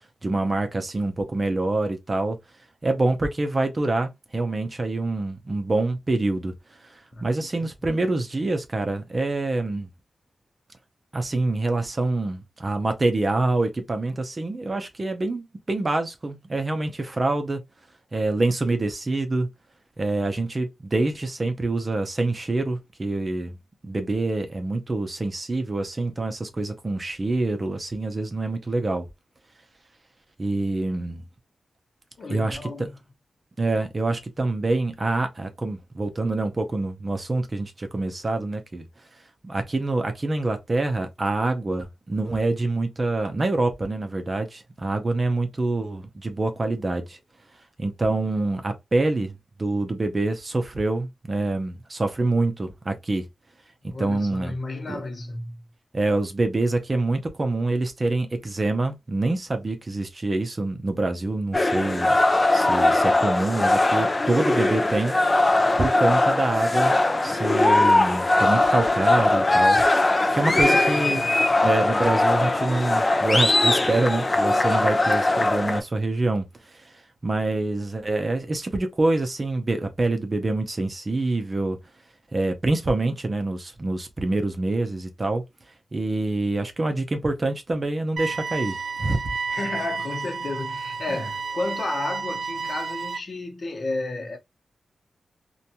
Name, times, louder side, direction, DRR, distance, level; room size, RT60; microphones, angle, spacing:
voice 1, 0.2-2.4 2.8-6.5 6.8-6.9 7.2-9.9 11.1-17.6 18.1-19.5 20.0-23.6 23.8-29.1 30.4-31.2 32.3-32.7 33.6-38.9 39.4-47.2 47.8-53.3 53.8-54.5 54.9-55.0 55.9-62.2 62.5-65.1 65.8-67.0 67.2-69.8 70.3-71.3 71.6-76.9 77.2-81.8 82.3-85.4 85.9-89.3 91.1-91.3, right 2 dB, 35° right, 0.6 m, -26 dB
voice 2, 7.1-7.7 32.2-33.0 53.9-55.7 70.5-71.3 89.5-94.4, left 2 dB, 50° left, 0.7 m, -32 dB
sound 1, 61.5-75.8, left 2 dB, 25° left, 0.4 m, -20 dB
sound 2, 88.2-93.2, right 4 dB, 80° right, 0.5 m, -31 dB
2.5 x 2.2 x 2.8 m
wide cardioid pair, 110°, 0 cm